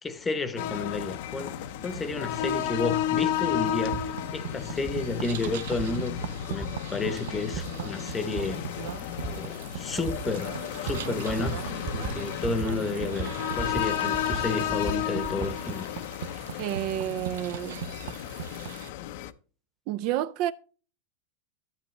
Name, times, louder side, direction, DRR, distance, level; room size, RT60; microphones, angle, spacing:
voice 1, 0.0-8.6 9.2-16.0, left 3 dB, 10° left, 0.8 m, -32 dB
sound 1, 0.6-19.3, left 10 dB, 60° left, 0.6 m, -33 dB
sound 2, 1.8-18.9, right 10 dB, 80° right, 0.6 m, -40 dB
sound 3, 3.9-4.1 4.9-5.0 5.8-5.9 6.6-6.7 7.5-7.6 8.4-8.5 9.2-9.3 10.1-10.2 10.9-11.0 11.3-11.6 11.9-12.2 12.4-12.7 13.0-13.9 14.1-15.5, right 3 dB, 25° right, 1.4 m, -35 dB
voice 2, 16.6-17.8 19.9-20.5, right 13 dB, 45° right, 0.3 m, -30 dB
12.0 x 8.3 x 3.2 m
supercardioid pair, 165°, 0 cm